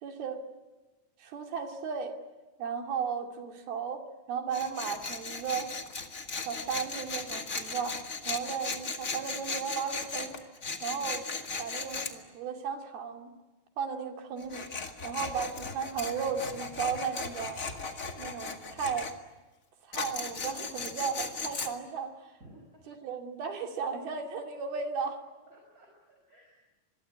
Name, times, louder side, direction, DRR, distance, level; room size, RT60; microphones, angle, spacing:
voice 1, 0.0-0.4 1.2-2.2 2.6-5.7 6.4-8.0 8.3-10.4 10.8-11.3 11.6-13.3 13.8-14.7 15.0-17.6 18.2-19.1 19.8-22.2 22.9-25.2, right 6 dB, 85° right, 4 dB, 4.5 m, -35 dB
Tools, 4.5-12.1 14.4-19.1 19.9-21.7, left 4 dB, 30° left, 1.6 m, -37 dB
voice 2, 22.4-22.8 25.5-26.6, right 1 dB, 20° right, 1 dB, 5.6 m, -56 dB
26.0 x 23.0 x 9.6 m, 1.2 s
omnidirectional pair, 4.3 m